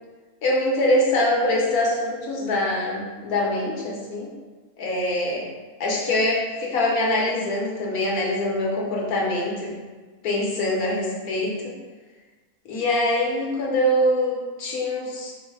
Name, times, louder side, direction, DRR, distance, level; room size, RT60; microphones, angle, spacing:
voice 1, 0.4-4.3 4.8-5.5 5.8-9.7 10.2-11.7 12.6-15.3, left 1 dB, 75° left, -3 dB, 1.3 m, -24 dB
4.7 x 2.1 x 4.7 m, 1.4 s
omnidirectional pair, 1.5 m